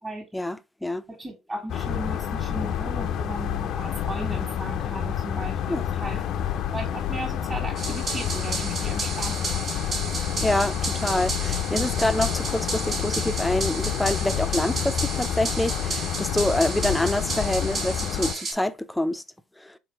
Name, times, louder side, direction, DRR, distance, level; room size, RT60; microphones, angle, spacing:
voice 1, 0.3-1.0 5.7-5.8 10.4-19.2 19.6-19.7, left 1 dB, 10° left, 0.5 m, -26 dB
voice 2, 1.2-6.2 6.7-9.9, right 2 dB, 20° right, 1.5 m, -36 dB
sound 1, 1.7-18.3, left 9 dB, 60° left, 0.5 m, -29 dB
sound 2, 7.8-18.5, right 3 dB, 50° right, 1.5 m, -32 dB
3.7 x 3.3 x 2.8 m
hypercardioid pair, 65°, 0 cm